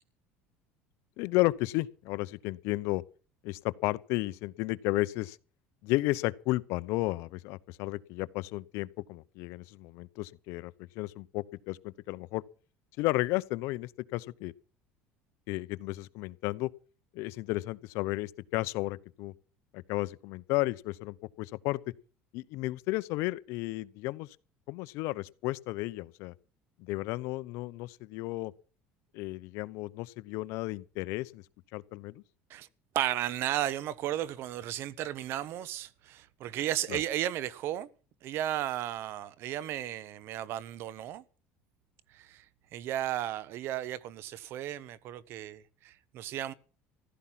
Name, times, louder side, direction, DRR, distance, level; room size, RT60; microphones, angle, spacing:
voice 1, 1.2-3.0 3.4-5.4 5.8-12.4 13.0-14.5 15.5-16.7 17.1-19.3 19.7-21.8 22.3-24.4 24.7-26.3 26.8-28.5 29.1-31.4 31.7-32.2 36.9-37.0, left 20 dB, 70° left, 0.8 m, -33 dB
voice 2, 32.9-37.9 38.2-41.2 42.1-42.4 42.7-46.5, right 12 dB, 60° right, 1.1 m, -34 dB
15.0 x 13.0 x 5.9 m
cardioid pair, 130°, 5 cm